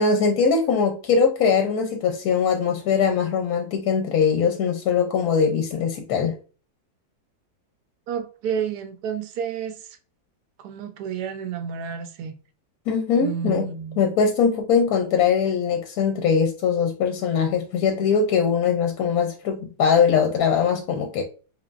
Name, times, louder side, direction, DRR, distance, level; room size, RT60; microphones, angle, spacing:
voice 1, 0.0-6.3 12.9-13.7 14.0-21.2, left 6 dB, 70° left, 0.9 m, -21 dB
voice 2, 8.1-9.9 10.6-12.3 13.2-14.1, right 7 dB, 70° right, 1.0 m, -30 dB
4.4 x 3.2 x 2.4 m
omnidirectional pair, 2.0 m